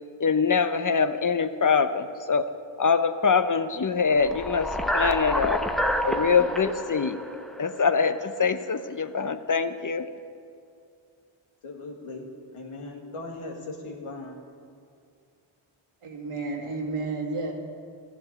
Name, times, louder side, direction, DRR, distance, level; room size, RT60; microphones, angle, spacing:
voice 1, 0.2-2.5 2.8-4.7 4.9-5.6 6.0-7.2 7.6-10.1, left 5 dB, 40° left, 11 dB, 0.9 m, -24 dB
sound 1, 4.1-8.4, equal, ahead, 0.8 m, -28 dB
voice 2, 11.6-12.3 12.5-14.4, left 2 dB, 90° left, 1 dB, 1.9 m, -38 dB
voice 3, 16.0-17.5, right 3 dB, 85° right, -1 dB, 2.0 m, -31 dB
13.0 x 7.8 x 8.7 m, 2.3 s
cardioid pair, 45°, 50 cm